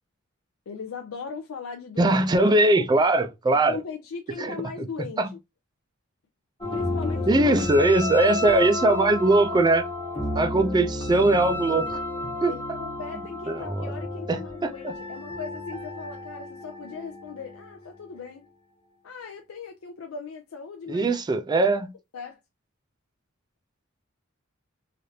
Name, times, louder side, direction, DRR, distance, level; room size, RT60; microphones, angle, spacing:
voice 1, 0.7-2.2 2.7-3.0 3.7-5.2 6.7-8.1 12.5-18.5 19.0-21.2 22.1-22.4, left 5 dB, 80° left, 0.5 m, -38 dB
voice 2, 2.0-3.8 4.4-4.9 5.2-5.3 7.3-9.8 10.3-12.0 12.4-12.5 13.5-13.9 14.3-14.9 20.9-21.9, right 2 dB, 20° right, 0.3 m, -21 dB
sound 1, 6.6-18.3, left 2 dB, 25° left, 1.0 m, -32 dB
3.2 x 2.5 x 2.7 m
head